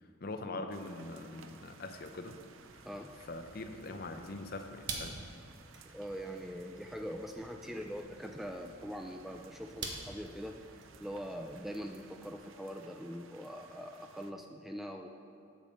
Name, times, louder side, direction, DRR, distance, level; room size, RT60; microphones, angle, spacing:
voice 1, 0.2-2.4 2.7-2.8 3.3-5.2, left 2 dB, 50° left, 6 dB, 0.7 m, -42 dB
sound 1, 0.7-14.3, right 5 dB, 75° right, 0.6 m, -59 dB
sound 2, 1.9-12.3, right 3 dB, 60° right, 1.2 m, -49 dB
voice 2, 5.9-10.6 11.0-15.1, equal, ahead, 3 dB, 0.3 m, -42 dB
8.1 x 6.8 x 6.5 m, 2.7 s
head